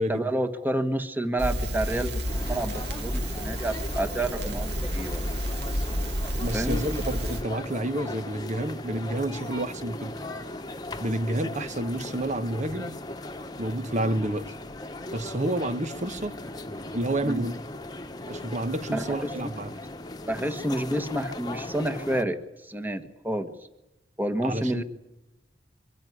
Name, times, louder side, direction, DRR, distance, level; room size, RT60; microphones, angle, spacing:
voice 1, 0.0-5.2 6.5-6.8 17.2-17.5 18.9-19.5 20.2-22.4 22.6-23.5 24.2-24.8, right 1 dB, 10° right, 1.4 m, -29 dB
Crackle, 1.4-7.4, equal, 65° right, 2.1 m, -30 dB
sound 1, 2.3-22.2, left 2 dB, 20° left, 1.3 m, -38 dB
voice 2, 6.4-10.2 11.0-13.0 13.6-14.5 15.1-16.3 16.9-17.6 18.3-19.7 24.4-24.8, right 1 dB, 40° right, 1.2 m, -29 dB
24.5 x 14.5 x 9.8 m
head